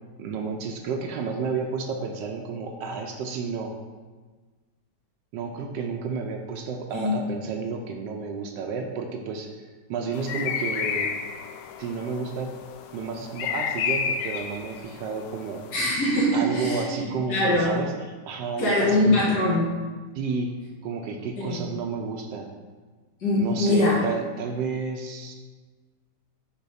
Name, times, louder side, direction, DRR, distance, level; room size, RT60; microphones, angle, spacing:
voice 1, 0.2-3.8 5.3-11.1 11.8-12.6 12.9-15.6 16.3-17.9 18.3-19.2 20.1-20.5 20.8-22.5 23.4-25.4, right 5 dB, 85° right, 2 dB, 1.3 m, -31 dB
sound 1, 10.1-15.9, left 6 dB, 90° left, 1.2 m, -31 dB
voice 2, 15.7-17.0 17.3-17.7 18.6-19.7 21.4-21.6 23.2-23.9, left 1 dB, 70° left, -8 dB, 2.2 m, -22 dB
6.1 x 3.5 x 5.6 m, 1.4 s
omnidirectional pair, 1.8 m